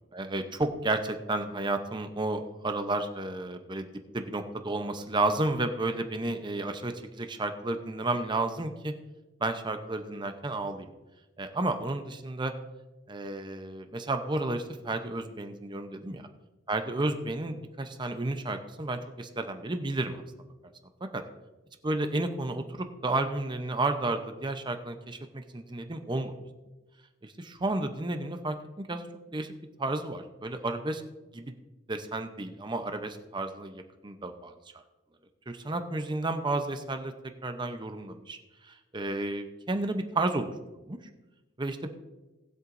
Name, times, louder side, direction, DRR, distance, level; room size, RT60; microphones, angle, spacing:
voice 1, 0.1-3.9 4.1-8.9 9.4-10.9 11.4-12.5 13.1-16.2 16.7-20.2 21.1-21.2 21.8-26.4 27.2-29.1 29.3-29.5 29.8-31.0 31.3-31.5 31.9-34.5 35.5-37.1 37.4-38.4 38.7-40.5 40.9-41.0 41.6-41.8, right 2 dB, 20° right, 7 dB, 0.7 m, -32 dB
19.0 x 7.8 x 2.6 m, 1.1 s
head